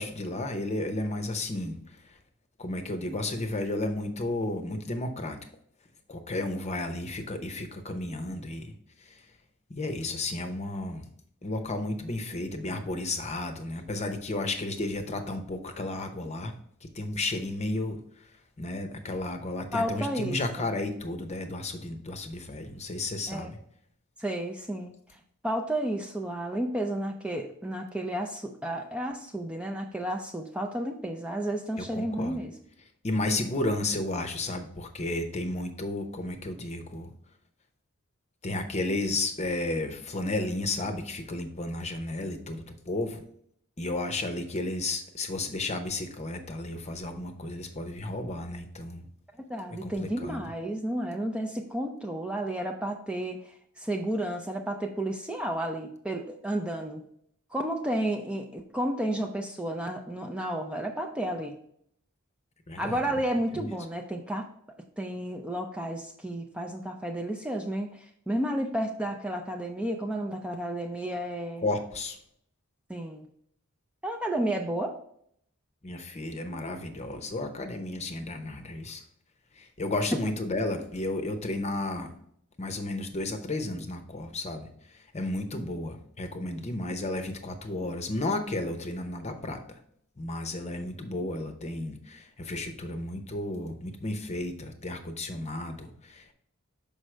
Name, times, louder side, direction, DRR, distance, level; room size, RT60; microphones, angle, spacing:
voice 1, 0.0-1.8 2.6-5.4 6.1-8.7 9.0-9.2 9.7-11.1 11.4-16.5 16.8-18.0 18.6-23.6 31.8-32.4 33.0-37.1 38.4-43.2 43.8-49.0 49.8-50.4 62.7-63.1 63.5-63.7 71.6-72.2 75.8-79.0 79.6-82.1 82.6-84.7 84.9-89.8 90.2-96.3, left 2 dB, 30° left, 7 dB, 0.8 m, -33 dB
voice 2, 19.7-20.7 23.3-23.5 24.2-24.9 25.4-32.5 49.5-57.0 57.5-61.6 62.8-64.5 65.0-71.6 72.9-73.2 74.0-74.9, right 1 dB, 5° right, 2 dB, 0.4 m, -32 dB
6.2 x 5.3 x 3.3 m, 0.68 s
head